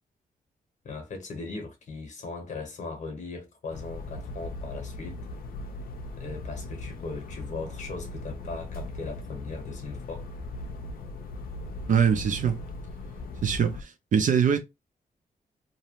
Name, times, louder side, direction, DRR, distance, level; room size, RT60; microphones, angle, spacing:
voice 1, 0.8-5.2 6.2-10.3 13.3-13.5, left 3 dB, 50° left, 0.9 m, -38 dB
sound 1, 3.7-13.8, left 2 dB, 70° left, 0.5 m, -39 dB
voice 2, 11.9-12.6 13.4-14.6, right 7 dB, 55° right, 0.5 m, -23 dB
2.7 x 2.0 x 3.0 m
wide cardioid pair, 155°, 16 cm